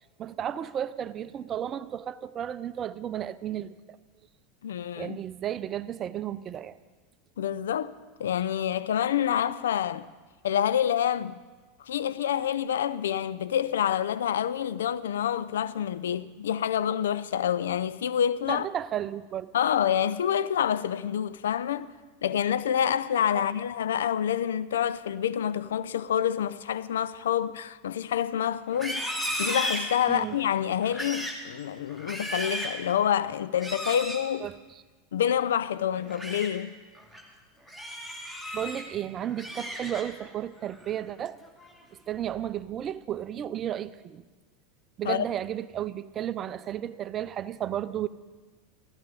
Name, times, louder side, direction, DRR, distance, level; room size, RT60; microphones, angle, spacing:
voice 1, 0.2-4.0 5.0-6.8 18.5-19.5 23.3-23.4 30.1-30.4 34.4-34.6 38.5-41.4 42.1-44.2 45.0-48.1, right 10 dB, 35° right, 0.5 m, -33 dB
voice 2, 4.6-5.2 7.4-10.1 10.4-11.4 11.8-18.7 19.5-21.9 22.2-34.5 35.1-36.7 45.0-45.3, left 9 dB, 70° left, 0.4 m, -27 dB
Livestock farm animals working animals, 28.7-30.4 30.8-31.4 31.9-32.8 33.6-34.2 35.9-36.5 37.0-37.2 37.7-38.8 39.2-40.3 40.7-41.0 41.4-41.8, equal, 10° left, 2.3 m, -35 dB
14.5 x 14.0 x 5.2 m
figure-of-eight pair, 80°, 0 cm